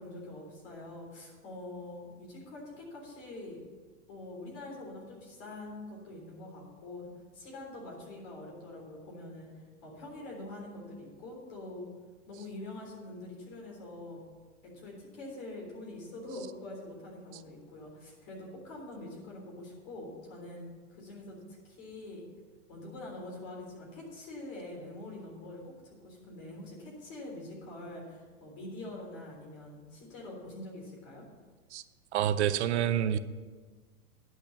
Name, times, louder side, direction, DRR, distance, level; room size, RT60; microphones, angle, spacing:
voice 1, 0.0-3.6 4.1-11.9 12.3-14.2 14.6-22.2 22.7-31.2, left 2 dB, 35° left, -2 dB, 3.6 m, -45 dB
voice 2, 32.1-33.2, right 10 dB, 50° right, 13 dB, 0.6 m, -28 dB
10.5 x 6.4 x 7.1 m, 1.4 s
supercardioid pair, 165°, 44 cm